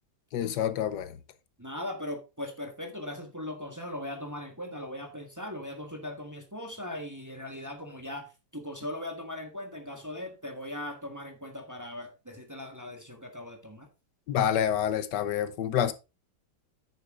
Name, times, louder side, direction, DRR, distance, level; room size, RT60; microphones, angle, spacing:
voice 1, 0.3-1.2 14.3-15.9, left 9 dB, 85° left, 1.4 m, -27 dB
voice 2, 1.6-13.9, left 1 dB, 10° right, 1.2 m, -39 dB
9.3 x 6.8 x 3.6 m
omnidirectional pair, 1.8 m